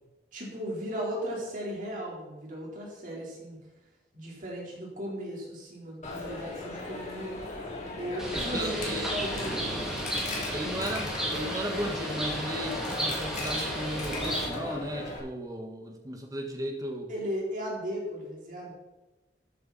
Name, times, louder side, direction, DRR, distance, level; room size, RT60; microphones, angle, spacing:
voice 1, 0.3-3.6 4.1-7.4 8.0-8.8 9.1-9.8 17.1-18.7, equal, 50° right, -3 dB, 4.2 m, -36 dB
Coin (dropping), 6.0-15.2, left 2 dB, 45° left, 3.3 m, -37 dB
Bird, 8.2-14.5, right 1 dB, 5° right, 2.9 m, -34 dB
voice 2, 8.3-9.1 10.5-17.1, right 1 dB, 20° right, 3 dB, 1.7 m, -35 dB
14.0 x 9.2 x 4.3 m, 1.1 s
head